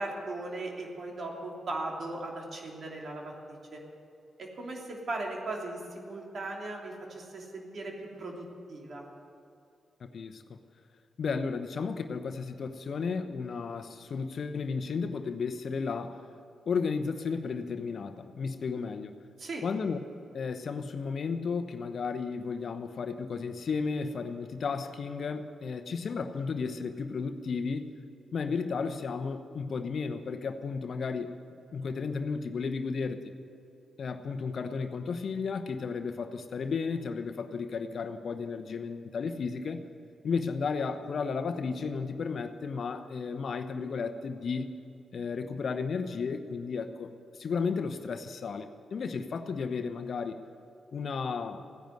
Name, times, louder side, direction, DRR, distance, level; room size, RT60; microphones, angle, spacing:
voice 1, 0.0-3.8 4.4-9.0 19.4-19.6, right 2 dB, 60° right, 0 dB, 3.0 m, -38 dB
voice 2, 10.0-10.4 11.2-16.2 16.7-19.2 19.6-20.0 20.3-27.9 28.3-31.3 31.7-33.2 34.0-39.8 40.2-44.7 45.1-50.4 50.9-51.6, left 5 dB, 60° left, 8 dB, 0.9 m, -33 dB
16.0 x 10.5 x 7.9 m, 2.7 s
hypercardioid pair, 40°, 0 cm